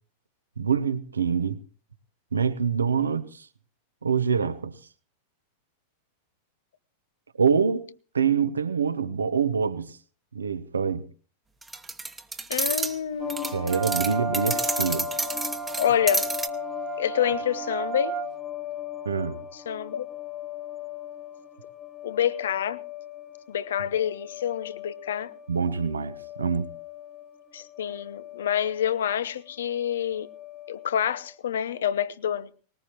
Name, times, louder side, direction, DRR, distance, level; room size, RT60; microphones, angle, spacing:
voice 1, 0.6-1.6 2.3-3.5 4.0-4.7 7.4-10.0 10.3-11.1 13.5-15.1 19.0-19.4 25.5-26.7, right 6 dB, 75° right, 0.9 m, -25 dB
sound 1, 11.6-13.0 13.3-16.5, right 3 dB, 10° right, 1.1 m, -30 dB
voice 2, 12.5-13.6 15.8-16.2 17.0-18.1 19.5-20.1 22.0-22.8 23.5-25.3 27.5-30.3 30.7-32.5, left 9 dB, 60° left, 0.8 m, -27 dB
sound 2, 13.2-31.3, left 11 dB, 15° left, 1.5 m, -39 dB
Wind instrument woodwind instrument, 13.7-18.3, right 9 dB, 35° right, 1.3 m, -34 dB
20.0 x 19.5 x 2.9 m
figure-of-eight pair, 90°, 0 cm